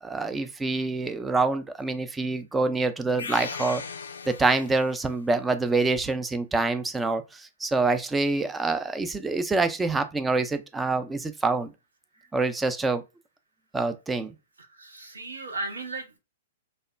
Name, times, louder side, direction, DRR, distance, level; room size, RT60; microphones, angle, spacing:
voice 1, 0.0-3.8 4.3-11.7 12.3-13.0 13.7-14.3, right 3 dB, 10° right, 0.4 m, -26 dB
sound 1, 3.2-5.1, left 5 dB, 75° left, 0.3 m, -37 dB
voice 2, 14.8-16.2, right 2 dB, 85° right, 0.8 m, -35 dB
3.1 x 2.0 x 2.3 m
figure-of-eight pair, 115°, 0 cm